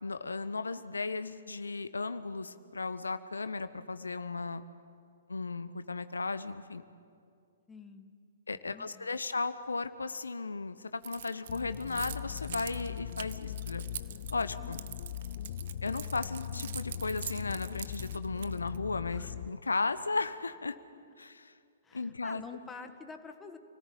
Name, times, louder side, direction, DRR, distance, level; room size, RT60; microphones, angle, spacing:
voice 1, 0.0-4.6 5.3-6.8 8.5-13.8 14.3-14.8 15.8-20.8 21.2-21.5 21.9-22.4, left 3 dB, 75° left, 12 dB, 1.0 m, -35 dB
voice 2, 7.7-8.1 8.6-9.1 14.6-15.1 19.1-19.3 21.8-23.6, left 5 dB, 10° left, 6 dB, 1.8 m, -48 dB
Keys jangling, 11.0-18.8, right 10 dB, 50° right, 1.0 m, -44 dB
sound 1, 11.5-19.5, left 11 dB, 45° left, 0.6 m, -40 dB
29.0 x 18.5 x 8.9 m, 2.3 s
figure-of-eight pair, 120°, 0 cm